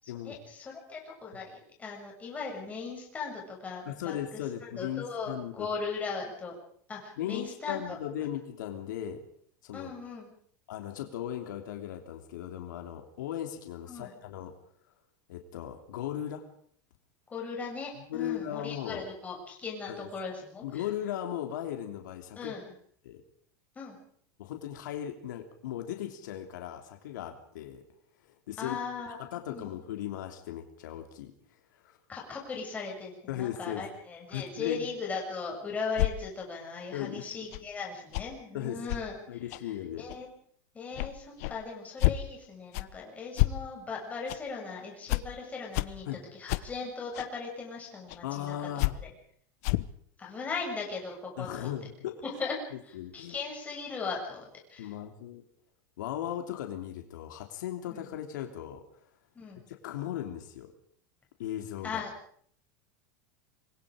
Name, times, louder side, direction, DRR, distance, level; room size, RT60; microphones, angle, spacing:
voice 1, 0.0-4.2 4.6-6.5 6.9-8.0 9.7-10.3 13.9-14.1 17.3-20.8 22.3-22.6 23.8-24.0 28.6-29.2 29.5-29.7 32.1-39.1 40.0-40.3 40.7-46.1 46.3-48.6 49.0-49.1 50.2-51.7 52.2-52.6 52.9-54.9 57.9-58.1 59.3-59.6 61.8-62.1, left 4 dB, 15° left, -1 dB, 7.3 m, -38 dB
voice 2, 3.9-5.7 7.2-9.2 9.6-9.9 10.7-14.5 15.3-16.4 18.0-19.1 19.9-20.1 20.6-22.5 23.0-23.2 24.4-27.8 28.3-28.8 29.1-31.3 31.7-32.0 33.3-34.0 34.3-34.9 36.9-37.2 38.5-38.8 39.3-40.1 46.0-46.2 48.2-48.9 51.4-52.2 52.7-53.4 54.8-55.4 56.0-58.8 59.7-60.7 61.4-62.0, left 11 dB, 90° left, 5 dB, 3.2 m, -37 dB
sound 1, 36.0-36.1 37.5-37.6 38.1-38.3 38.9-39.0 39.5-39.6 40.1-40.2 40.9-41.1 41.4-41.6 42.0-42.2 42.7-42.9 43.4-43.5 44.3-44.4 45.1-45.2 45.7-45.9 46.5-46.6 47.1-47.3 48.1-48.2 48.8-48.9 49.6-49.9, left 19 dB, 60° left, 1.0 m, -28 dB
26.5 x 21.0 x 5.1 m, 0.62 s
supercardioid pair, 155°, 10 cm